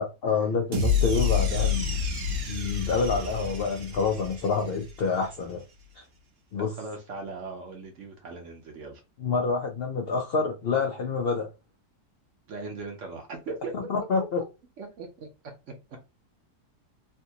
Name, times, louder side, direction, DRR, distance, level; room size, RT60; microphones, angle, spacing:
voice 1, 0.0-1.9 2.5-5.6 6.0-6.1 6.5-6.7 9.2-11.5 13.7-14.4, left 4 dB, 85° left, 0.5 m, -27 dB
sound 1, 0.7-5.1, left 5 dB, 75° right, 1.5 m, -28 dB
voice 2, 6.6-9.0 12.5-13.9 14.8-15.3 15.9-16.0, right 3 dB, 55° right, 1.0 m, -39 dB
3.5 x 2.5 x 2.7 m
omnidirectional pair, 1.8 m